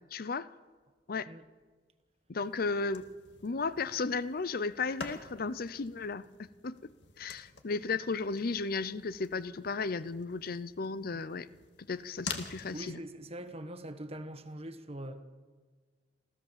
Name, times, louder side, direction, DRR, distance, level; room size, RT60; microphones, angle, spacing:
voice 1, 0.1-0.5 1.1-1.3 2.3-3.1 3.4-6.8 7.2-11.5 11.9-13.0, left 4 dB, 55° left, 0.6 m, -34 dB
sound 1, 2.4-12.9, left 4 dB, 75° left, 2.0 m, -48 dB
voice 2, 12.7-15.2, right 1 dB, 35° right, 1.5 m, -42 dB
28.0 x 15.0 x 7.4 m
head